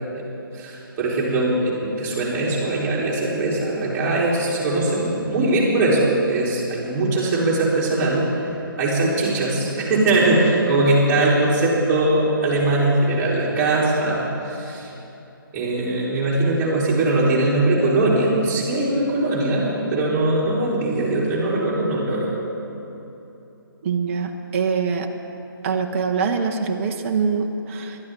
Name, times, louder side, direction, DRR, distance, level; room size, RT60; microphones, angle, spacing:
voice 1, 0.5-8.2 8.8-14.9 15.5-22.3, right 2 dB, 20° right, -7 dB, 4.0 m, -21 dB
voice 2, 23.8-25.1 25.6-28.0, right 5 dB, 35° right, 3 dB, 1.0 m, -24 dB
20.0 x 12.5 x 3.9 m, 2.9 s
figure-of-eight pair, 150°, 12 cm